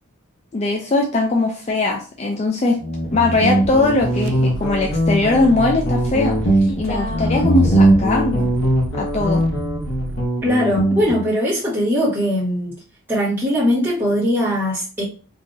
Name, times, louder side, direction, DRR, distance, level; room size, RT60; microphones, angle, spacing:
voice 1, 0.5-2.8 3.1-6.4 6.8-8.5 9.0-9.4, left 2 dB, 30° left, 0.4 m, -20 dB
Guitar, 2.8-11.3, right 1 dB, 60° left, 1.0 m, -20 dB
sound 1, 2.9-10.3, right 2 dB, 55° right, 0.3 m, -32 dB
voice 2, 10.4-12.7 13.1-15.0, equal, 10° right, 1.6 m, -20 dB
3.7 x 2.7 x 2.6 m
head